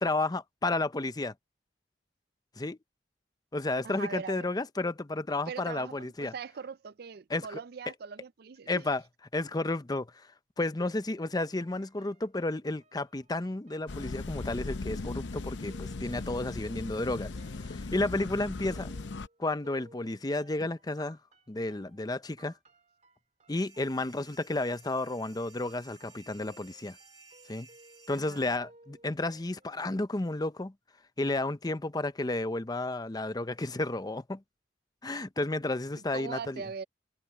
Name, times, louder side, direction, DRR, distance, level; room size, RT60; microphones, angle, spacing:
voice 1, 0.0-1.3 2.6-2.8 3.5-6.3 7.3-7.6 8.7-9.0 9.3-10.1 10.6-17.3 17.6-18.9 19.4-21.2 21.5-22.5 23.5-27.0 27.5-27.7 28.1-30.7 31.2-34.4 35.0-36.6, left 2 dB, 20° left, 0.7 m, -32 dB
voice 2, 3.8-4.5 5.5-8.8 28.2-28.6 36.1-36.8, right 6 dB, 60° right, 0.4 m, -41 dB
sound 1, 11.5-29.8, right 2 dB, 40° right, 2.9 m, -60 dB
sound 2, 13.9-19.3, left 3 dB, 85° left, 0.7 m, -38 dB
sound 3, 23.6-28.6, right 4 dB, 20° right, 2.3 m, -57 dB
head